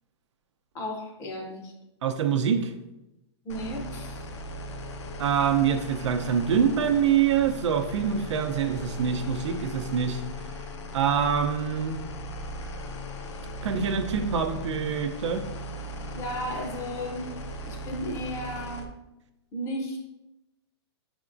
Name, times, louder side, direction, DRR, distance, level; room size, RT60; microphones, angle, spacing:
voice 1, 0.7-1.7 3.4-4.3 16.1-17.3 17.7-18.9 19.5-20.1, equal, 20° left, 1 dB, 0.6 m, -34 dB
voice 2, 2.0-2.7 5.2-10.2 10.9-12.0 13.6-15.4, right 7 dB, 85° right, 6 dB, 0.6 m, -25 dB
sound 1, 3.5-18.9, left 1 dB, 80° left, 0.7 m, -38 dB
5.8 x 3.5 x 2.5 m, 0.95 s
hypercardioid pair, 165°, 15 cm